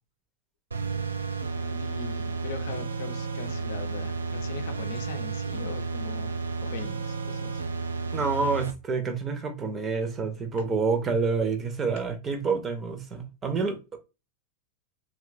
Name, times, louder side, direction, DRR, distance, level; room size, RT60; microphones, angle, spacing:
sound 1, 0.7-8.7, right 4 dB, 75° right, 0.3 m, -32 dB
voice 1, 1.5-7.6, left 7 dB, 55° left, 0.6 m, -41 dB
voice 2, 8.1-14.0, right 4 dB, 20° right, 0.6 m, -28 dB
3.0 x 2.2 x 2.5 m
figure-of-eight pair, 90°, 0 cm